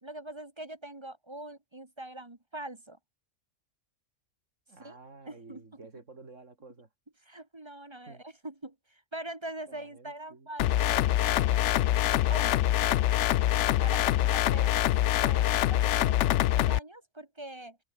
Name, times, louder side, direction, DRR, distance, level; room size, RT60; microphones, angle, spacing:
voice 1, 0.0-3.0 4.8-5.0 5.2-5.6 7.2-12.0 12.3-13.0 13.8-17.8, right 1 dB, 25° right, 1.5 m, -43 dB
voice 2, 4.7-6.9 8.1-8.2 9.7-10.5 13.9-14.4, right 3 dB, 90° right, 3.4 m, -51 dB
sound 1, 10.6-16.8, left 13 dB, 75° left, 0.9 m, -25 dB
open air
omnidirectional pair, 1.2 m